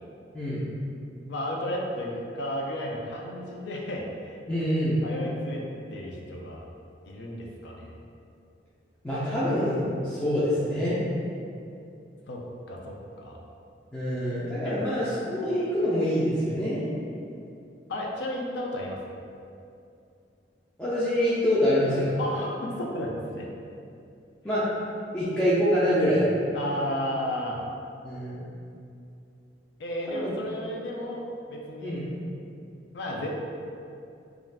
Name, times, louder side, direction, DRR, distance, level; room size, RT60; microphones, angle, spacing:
voice 1, 0.3-0.6 4.5-5.0 9.0-11.0 13.9-16.9 20.8-22.1 24.4-24.7 25.1-26.3 28.0-28.4 30.1-30.4 31.8-32.1, equal, 10° left, -12 dB, 0.4 m, -25 dB
voice 2, 1.3-4.0 5.0-5.6 5.9-6.7 7.1-7.9 12.3-12.4 12.7-13.4 14.6-14.8 17.9-19.0 22.2-23.5 26.5-27.6 29.8-31.2 31.5-31.9 32.9-33.3, left 1 dB, 70° left, -1 dB, 0.4 m, -33 dB
2.4 x 2.3 x 3.3 m, 2.5 s
head